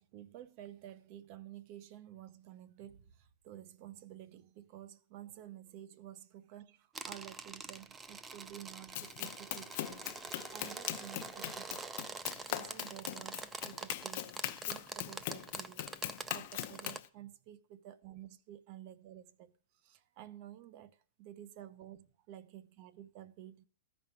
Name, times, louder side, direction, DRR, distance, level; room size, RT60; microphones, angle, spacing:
voice 1, 0.0-10.1 10.5-11.9 12.4-15.9 16.3-19.5 19.8-23.7, right 12 dB, 35° right, 0.8 m, -52 dB
sound 1, 6.9-17.0, right 4 dB, 10° right, 0.4 m, -45 dB
Run, 8.9-17.1, left 14 dB, 45° left, 0.6 m, -41 dB
14.0 x 5.2 x 7.1 m
supercardioid pair, 165°, 0 cm